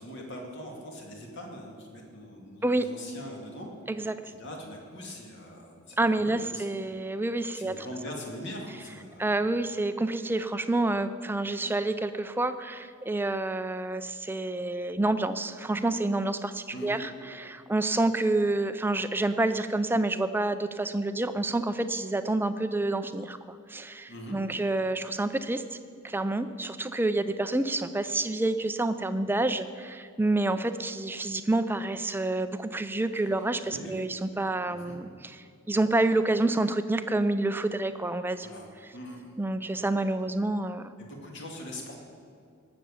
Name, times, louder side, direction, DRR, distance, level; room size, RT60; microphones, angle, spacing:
voice 1, 0.0-3.7 4.0-6.9 7.5-9.3 16.7-17.0 24.1-24.4 33.6-34.0 34.7-35.0 38.4-39.3 41.0-42.0, equal, 50° left, 0 dB, 2.4 m, -42 dB
voice 2, 6.0-7.9 9.2-25.8 26.0-35.4 35.7-38.5 39.4-40.9, right 2 dB, 10° right, 11 dB, 0.4 m, -28 dB
18.5 x 7.0 x 7.1 m, 2.4 s
head